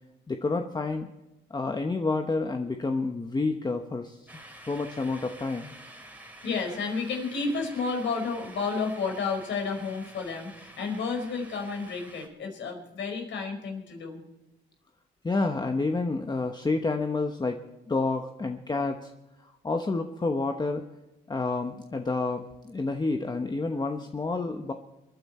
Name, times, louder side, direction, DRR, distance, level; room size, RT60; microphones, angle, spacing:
voice 1, 0.3-1.1 1.5-4.3 4.7-5.7 15.2-19.1 19.4-20.9 21.3-24.7, left 3 dB, 20° left, 5 dB, 1.0 m, -29 dB
sound 1, 4.3-12.3, right 1 dB, 10° right, 2.8 m, -49 dB
voice 2, 6.4-14.2, left 4 dB, 70° left, 3 dB, 5.0 m, -31 dB
27.0 x 9.9 x 4.3 m, 0.99 s
cardioid pair, 90°, 20 cm